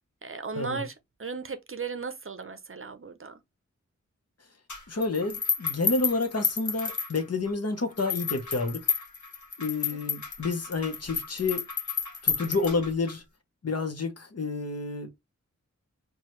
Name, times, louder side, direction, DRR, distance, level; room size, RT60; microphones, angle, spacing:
voice 1, 0.2-3.4, right 5 dB, 45° right, 0.6 m, -36 dB
sound 1, 4.7-7.5 8.0-13.1, left 5 dB, 80° left, 1.2 m, -31 dB
voice 2, 4.9-8.9 9.6-11.6 12.2-13.2 13.6-15.1, left 3 dB, 55° left, 0.9 m, -29 dB
4.7 x 2.3 x 3.1 m
wide cardioid pair, 70°, 29 cm